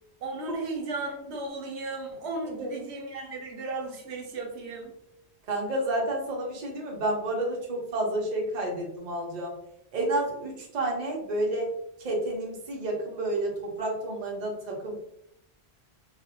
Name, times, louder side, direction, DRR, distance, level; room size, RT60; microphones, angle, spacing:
voice 1, 0.2-4.9, right 3 dB, 80° right, 1 dB, 0.9 m, -35 dB
voice 2, 5.5-9.6 9.9-11.7 12.0-15.0, right 1 dB, 50° right, -1 dB, 0.6 m, -30 dB
2.4 x 2.0 x 2.7 m, 0.78 s
omnidirectional pair, 1.1 m